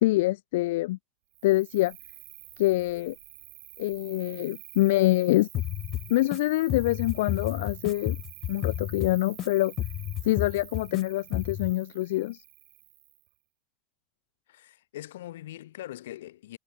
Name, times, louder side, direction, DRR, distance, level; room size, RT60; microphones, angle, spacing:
voice 1, 0.0-1.0 1.4-1.9 2.6-3.1 3.8-5.5 6.1-8.2 8.5-9.7 10.2-12.4, left 18 dB, 70° left, 0.9 m, -25 dB
Cricket, 1.3-13.3, right 31 dB, 55° right, 5.2 m, -48 dB
sound 1, 5.5-6.4 6.7-9.5 9.8-11.0 11.3-11.7, left 14 dB, 35° left, 0.7 m, -32 dB
voice 2, 14.5-16.6, left 14 dB, 90° left, 3.6 m, -42 dB
supercardioid pair, 155°, 0 cm